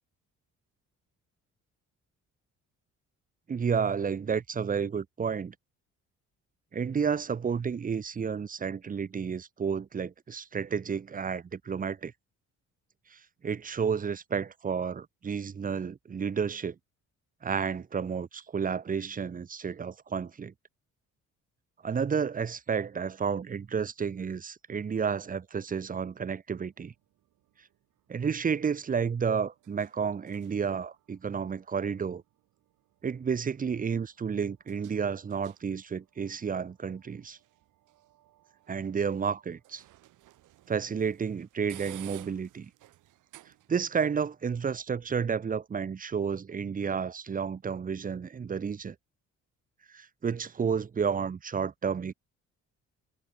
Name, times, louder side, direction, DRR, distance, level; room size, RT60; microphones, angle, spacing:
voice 1, 3.5-5.5 6.7-12.1 13.1-16.8 17.4-20.5 21.8-26.9 28.1-32.2 33.0-37.4 38.7-39.8 40.7-42.7 43.7-48.9 49.9-52.1, right 6 dB, 30° right, 0.7 m, -31 dB
sound 1, 26.5-44.0, right 15 dB, 90° right, 5.7 m, -57 dB
cardioid pair, 90°, 30 cm